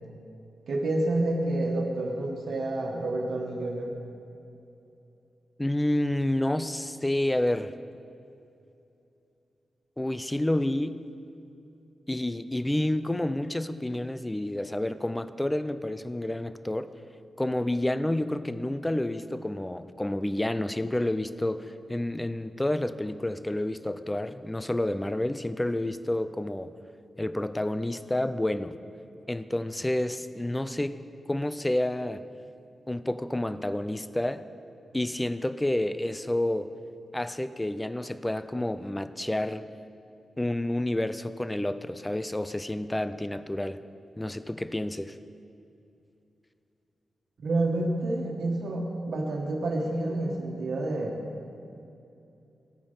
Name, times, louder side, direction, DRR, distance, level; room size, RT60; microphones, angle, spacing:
voice 1, 0.7-4.0 47.4-51.2, right 2 dB, 70° right, -1 dB, 1.4 m, -29 dB
voice 2, 5.6-7.7 10.0-11.0 12.1-16.9 17.4-26.7 27.2-28.8 29.3-31.0 31.3-32.2 32.9-34.4 34.9-36.7 37.1-39.7 40.4-43.8 44.2-45.2, left 1 dB, 10° left, 13 dB, 0.4 m, -29 dB
15.0 x 8.7 x 5.6 m, 2.7 s
wide cardioid pair, 160°, 0 cm